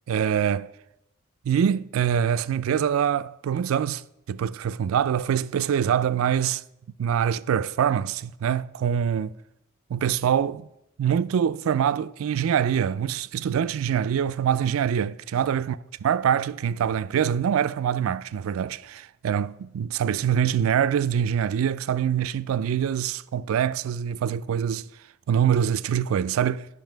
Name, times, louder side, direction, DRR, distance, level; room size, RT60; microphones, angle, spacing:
voice 1, 0.1-0.7 1.4-4.0 4.3-6.6 7.0-9.4 9.9-10.7 11.0-24.8 25.3-26.7, right 8 dB, 80° right, 0.3 m, -24 dB
9.3 x 5.7 x 4.5 m
head